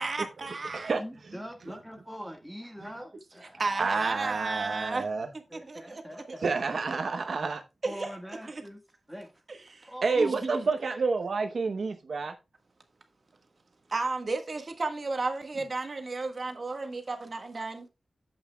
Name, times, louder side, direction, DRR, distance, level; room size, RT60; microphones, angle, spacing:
voice 1, 0.0-0.9 3.6-5.1 5.5-6.0 7.8-8.1 8.4-8.6 9.7-10.7 13.9-17.9, right 3 dB, 45° right, 1.4 m, -33 dB
voice 2, 1.0-4.1 5.5-6.6 7.8-8.8 9.1-9.3 9.8-10.4 10.9-11.0, equal, ahead, 1.6 m, -43 dB
voice 3, 3.8-5.3 6.4-7.6 10.0-12.3, right 4 dB, 65° right, 0.9 m, -29 dB
11.0 x 8.0 x 2.2 m
wide cardioid pair, 140°, 0 cm